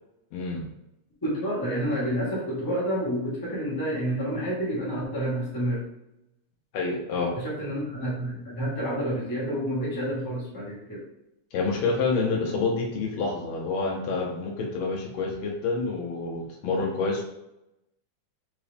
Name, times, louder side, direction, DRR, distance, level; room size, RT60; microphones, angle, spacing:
voice 1, 0.3-0.6 6.7-7.3 11.5-17.3, left 4 dB, 75° left, 0 dB, 1.8 m, -28 dB
voice 2, 1.2-5.8 7.3-11.0, equal, 20° left, -7 dB, 0.5 m, -29 dB
4.7 x 3.0 x 3.4 m, 0.86 s
omnidirectional pair, 3.4 m